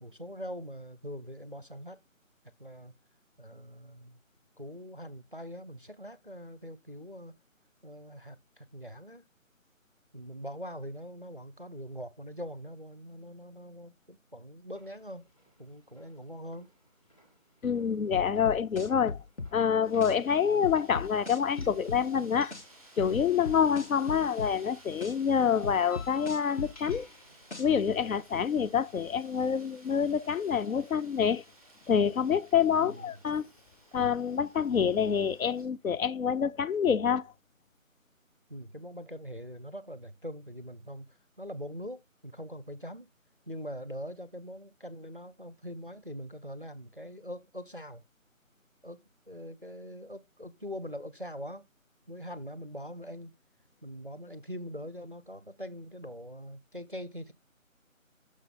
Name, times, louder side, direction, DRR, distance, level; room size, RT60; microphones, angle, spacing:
voice 1, 0.0-2.0 2.6-2.9 3.4-4.2 4.6-7.3 7.8-9.2 10.1-15.3 15.6-16.7 32.8-33.1 38.5-41.1 41.4-43.1 43.5-48.0 48.8-49.0 49.3-51.6 52.1-53.3 53.8-57.3, equal, 40° right, 0.4 m, -42 dB
sound 1, 14.7-29.7, left 2 dB, 25° left, 1.4 m, -60 dB
voice 2, 17.6-19.2 19.5-22.5 23.0-27.1 27.6-31.4 31.9-33.5 33.9-37.3, left 7 dB, 85° left, 0.6 m, -27 dB
sound 2, 18.1-19.5 20.0-20.1 20.6-22.0 22.5-22.6 23.0-24.5 25.0-25.1 25.6-27.0 27.5-27.6, left 3 dB, 55° left, 1.3 m, -38 dB
Wind, 19.8-35.6, right 1 dB, ahead, 1.2 m, -57 dB
6.4 x 5.3 x 3.6 m
figure-of-eight pair, 170°, 41 cm